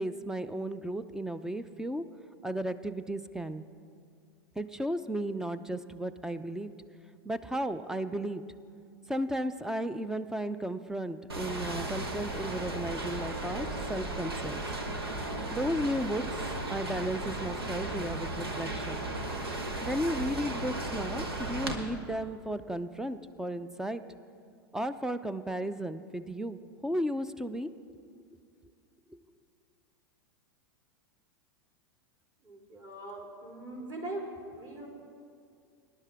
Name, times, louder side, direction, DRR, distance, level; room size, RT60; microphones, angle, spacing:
voice 1, 0.0-2.0 2.4-3.6 4.6-6.7 7.2-8.4 9.1-14.6 15.5-16.2 16.7-19.1 19.8-24.0 24.7-28.0, right 1 dB, 5° right, 13 dB, 0.5 m, -34 dB
sound 1, 11.3-21.7, right 2 dB, 90° right, 1.3 m, -35 dB
voice 2, 32.4-34.3 34.5-34.9, right 2 dB, 30° right, -2 dB, 3.6 m, -41 dB
21.0 x 11.0 x 3.5 m, 2.3 s
hypercardioid pair, 100°, 13 cm